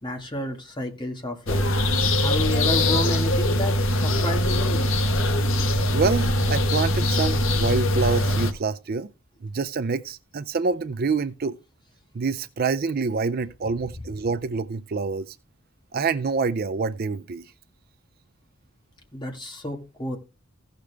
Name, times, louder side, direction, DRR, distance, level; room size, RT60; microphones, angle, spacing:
voice 1, 0.0-1.8 2.2-4.8 19.1-20.2, left 1 dB, 20° left, 1.8 m, -31 dB
sound 1, 1.5-8.5, left 1 dB, 65° left, 1.2 m, -22 dB
voice 2, 5.9-9.1 9.4-11.6 12.1-15.4 15.9-17.5, right 4 dB, 45° right, 0.4 m, -26 dB
16.0 x 6.7 x 3.4 m
head